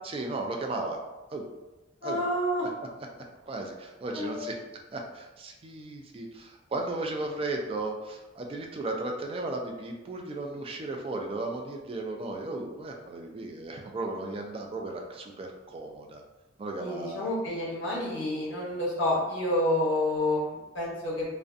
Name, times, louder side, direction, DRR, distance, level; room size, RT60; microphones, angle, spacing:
voice 1, 0.0-1.0 1.3-1.5 2.0-2.3 3.5-4.6 4.9-16.2 16.6-17.3 17.9-18.0, right 2 dB, 30° right, 2 dB, 0.3 m, -35 dB
voice 2, 2.0-2.6 4.1-4.5 16.8-21.2, left 1 dB, 75° left, -5 dB, 0.8 m, -29 dB
2.5 x 2.1 x 2.4 m, 1.1 s
head